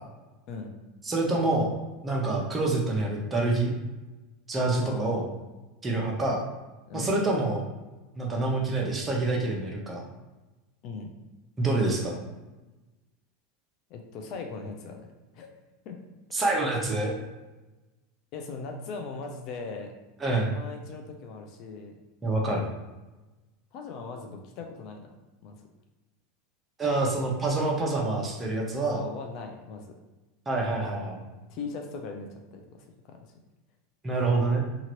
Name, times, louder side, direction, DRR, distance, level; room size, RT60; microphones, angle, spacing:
voice 1, 1.0-1.7 2.0-3.7 4.5-5.2 5.8-6.4 6.9-7.6 8.1-10.0 11.6-12.2 16.3-17.1 20.2-20.5 22.2-22.7 26.8-29.0 30.5-31.2 34.0-34.6, right 2 dB, 20° right, -1 dB, 0.7 m, -26 dB
voice 2, 4.8-5.4 6.9-7.1 10.8-11.1 13.9-15.5 15.9-16.0 18.3-19.9 20.5-21.9 23.7-25.1 25.4-25.7 28.9-29.9 31.5-33.2 34.1-34.2, left 4 dB, 50° left, 4 dB, 0.5 m, -39 dB
2.9 x 2.5 x 3.0 m, 1.1 s
supercardioid pair, 125°, 0 cm